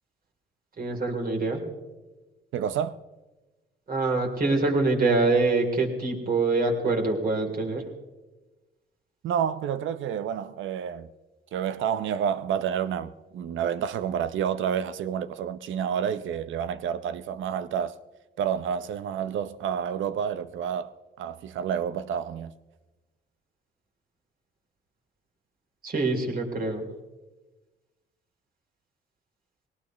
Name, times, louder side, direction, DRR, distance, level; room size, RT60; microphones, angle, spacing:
voice 1, 0.8-1.6 3.9-7.8 25.8-26.9, right 3 dB, 45° right, 3.6 m, -25 dB
voice 2, 2.5-3.0 9.2-11.1 11.5-18.0 18.4-20.9 21.2-22.5, right 8 dB, 75° right, 0.8 m, -29 dB
21.0 x 18.5 x 3.2 m
cardioid pair, 90°, 20 cm